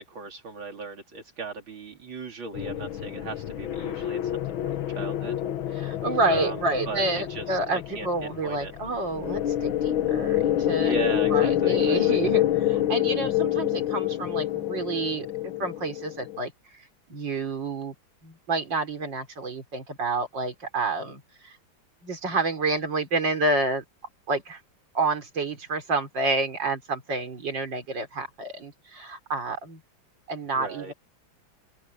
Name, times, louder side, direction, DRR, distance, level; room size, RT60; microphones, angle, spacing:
voice 1, 0.0-4.4 4.7-5.4 6.3-6.6 6.9-8.7 10.8-12.2 30.5-30.9, right 4 dB, 85° right, 3.8 m, -37 dB
sound 1, 2.5-16.4, left 12 dB, 85° left, 1.9 m, -27 dB
voice 2, 5.8-10.9 11.3-17.9 18.2-21.6 22.0-23.8 24.3-24.6 24.9-29.8 30.3-30.9, right 3 dB, 65° right, 4.5 m, -29 dB
open air
omnidirectional pair, 2.1 m